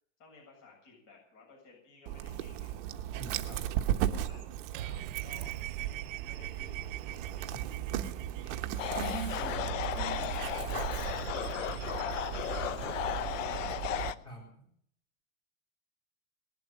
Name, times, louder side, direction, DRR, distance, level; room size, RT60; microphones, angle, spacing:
voice 1, 0.2-2.8 3.7-7.7 8.3-14.0, left 4 dB, 40° left, -2 dB, 7.8 m, -57 dB
Dog, 2.1-14.1, right 12 dB, 40° right, 1.1 m, -36 dB
voice 2, 3.1-3.6 7.5-7.6 7.9-8.1 9.0-10.3 14.2-14.6, right 2 dB, 10° left, -2 dB, 3.8 m, -44 dB
sound 1, 4.7-10.3, right 14 dB, 80° right, 0.8 m, -44 dB
sound 2, 8.8-14.2, left 12 dB, 75° left, 0.9 m, -35 dB
20.0 x 7.8 x 8.9 m, 0.67 s
supercardioid pair, 170°, 38 cm